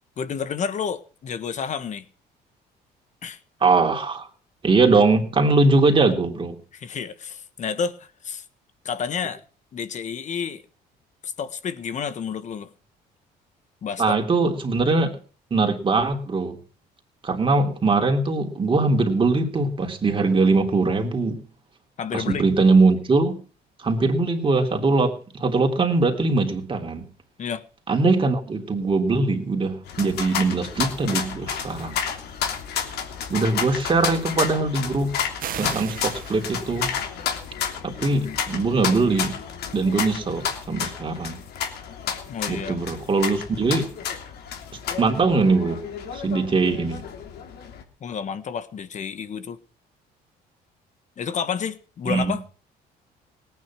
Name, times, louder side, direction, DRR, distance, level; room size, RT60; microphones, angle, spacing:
voice 1, 0.2-2.0 3.2-3.4 6.7-8.4 8.8-9.4 9.7-10.6 11.2-12.7 13.8-14.1 22.0-22.4 27.4-27.6 38.2-38.4 42.3-42.8 48.0-49.6 51.2-52.5, left 6 dB, 45° left, 1.5 m, -30 dB
voice 2, 3.6-4.3 4.6-6.6 14.0-15.2 15.5-16.6 17.2-21.4 22.1-23.4 23.8-27.1 27.9-32.0 33.3-35.2 35.5-36.9 37.8-39.4 39.7-41.4 42.5-43.9 45.0-45.8 46.1-47.0 52.1-52.3, right 3 dB, 30° right, 3.5 m, -21 dB
sound 1, 29.9-47.8, left 8 dB, 70° left, 3.2 m, -31 dB
sound 2, 35.4-37.0, right 10 dB, 55° right, 1.2 m, -36 dB
18.5 x 9.6 x 6.1 m
cardioid pair, 110°, 17 cm